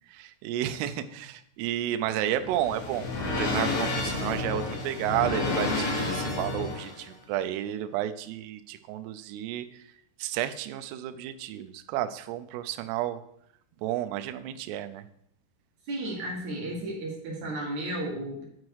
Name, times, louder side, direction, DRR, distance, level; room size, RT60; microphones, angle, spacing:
voice 1, 0.1-3.1 3.4-9.8 10.2-13.2 13.8-15.0, right 12 dB, 85° right, 9 dB, 2.4 m, -32 dB
sound 1, 1.9-7.0, left 2 dB, 70° left, 3.5 m, -30 dB
voice 2, 15.9-18.4, right 1 dB, 60° right, -3 dB, 2.2 m, -33 dB
9.4 x 4.6 x 4.6 m, 0.73 s
omnidirectional pair, 5.3 m